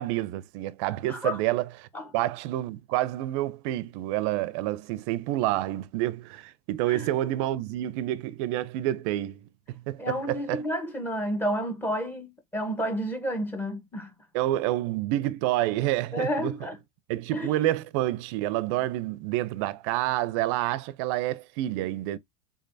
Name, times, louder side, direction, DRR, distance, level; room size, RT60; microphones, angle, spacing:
voice 1, 0.0-1.9 2.1-10.6 14.3-16.5 17.1-22.2, right 15 dB, 60° right, 0.5 m, -28 dB
voice 2, 1.1-1.4 1.9-2.1 6.8-7.1 10.0-14.1 16.1-16.8 17.3-17.5, equal, 10° left, 1.1 m, -30 dB
3.5 x 3.3 x 2.6 m
supercardioid pair, 130°, 17 cm